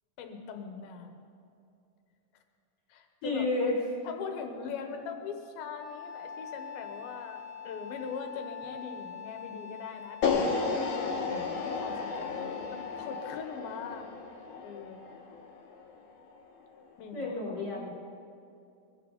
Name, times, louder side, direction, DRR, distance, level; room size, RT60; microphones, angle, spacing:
voice 1, 0.2-1.1 2.9-3.7 4.0-14.1 14.6-15.1 17.0-17.3, left 6 dB, 85° left, 5 dB, 3.0 m, -41 dB
voice 2, 3.2-3.8 17.1-17.9, left 3 dB, 45° left, -5 dB, 5.1 m, -31 dB
Wind instrument woodwind instrument, 5.8-13.4, left 7 dB, 35° right, 4.6 m, -44 dB
sound 1, 10.2-16.4, left 4 dB, 65° left, 3.0 m, -33 dB
22.5 x 15.0 x 4.1 m, 2.5 s
omnidirectional pair, 4.2 m